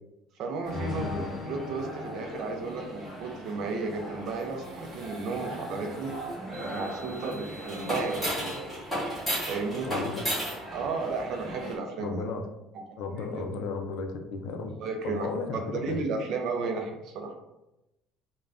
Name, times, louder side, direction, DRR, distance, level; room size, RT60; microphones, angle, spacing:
voice 1, 0.4-6.1 6.6-8.5 9.4-9.9 10.7-12.2 13.2-13.5 14.8-15.3 15.5-17.3, right 4 dB, 50° right, 3 dB, 0.4 m, -33 dB
sound 1, 0.6-11.8, equal, ahead, 0.9 m, -36 dB
sound 2, 0.7-3.6, left 3 dB, 25° left, 0.7 m, -39 dB
voice 2, 9.9-10.3 12.0-12.4 13.0-14.7 15.0-16.0, left 4 dB, 65° left, 4 dB, 0.4 m, -34 dB
2.4 x 2.1 x 3.3 m, 0.92 s
cardioid pair, 175°, 0 cm